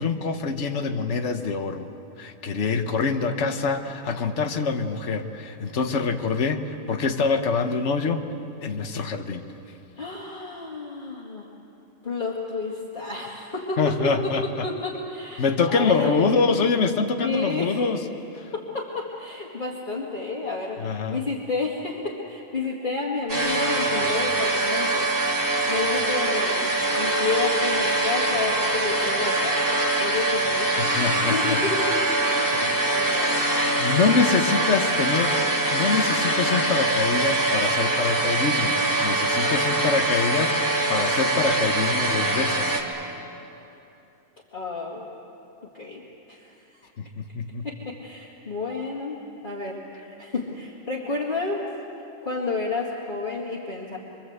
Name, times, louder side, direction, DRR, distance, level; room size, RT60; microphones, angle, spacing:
voice 1, 0.0-1.9 2.2-6.6 6.9-8.2 8.6-9.4 13.8-14.7 15.4-18.0 18.3-18.5 20.8-21.3 30.8-31.6 32.4-33.1 33.8-35.4 35.7-42.8 47.0-47.7, left 4 dB, 55° left, 5 dB, 1.5 m, -25 dB
voice 2, 10.0-11.5 12.0-16.5 17.2-17.8 18.5-31.0 31.3-32.0 32.3-33.5 44.5-45.1 45.7-46.9 47.6-51.6 52.2-54.0, left 3 dB, 35° left, -4 dB, 2.4 m, -31 dB
sound 1, 23.3-42.8, right 2 dB, 15° right, 2.7 m, -23 dB
25.5 x 25.0 x 8.1 m, 2.9 s
omnidirectional pair, 1.4 m